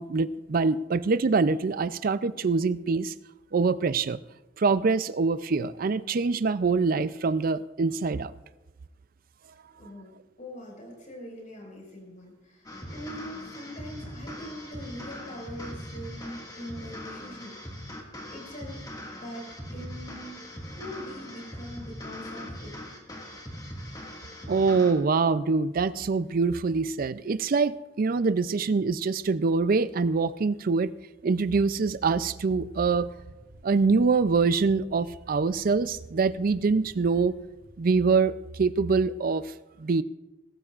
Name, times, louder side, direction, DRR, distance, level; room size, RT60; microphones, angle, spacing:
voice 1, 0.0-3.1 3.5-4.2 4.6-8.3 24.5-30.9 31.2-33.1 33.6-37.3 37.8-39.5 39.8-40.0, right 4 dB, 50° right, 15 dB, 0.4 m, -24 dB
voice 2, 9.8-17.6 18.3-18.8 19.1-22.8, equal, 45° left, -1 dB, 5.3 m, -42 dB
sound 1, 12.7-24.9, left 1 dB, 20° left, 2.0 m, -41 dB
sound 2, 32.7-37.8, equal, 70° right, 2.3 m, -54 dB
22.0 x 13.5 x 2.5 m, 1.1 s
head